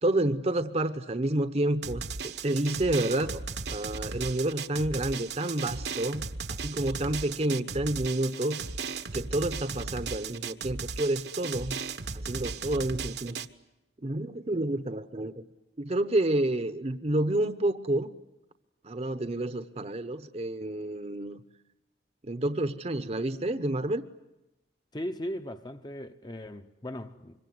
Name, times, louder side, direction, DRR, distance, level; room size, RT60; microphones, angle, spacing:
voice 1, 0.0-3.4 3.7-6.2 6.5-8.6 9.1-11.8 12.1-13.4 14.0-15.4 15.8-18.1 18.8-21.4 22.2-24.0, right 1 dB, 40° right, 0.9 m, -29 dB
Drum, 1.8-13.5, right 5 dB, 70° right, 1.2 m, -36 dB
voice 2, 24.9-27.3, equal, 25° left, 0.9 m, -38 dB
25.5 x 23.5 x 9.5 m
head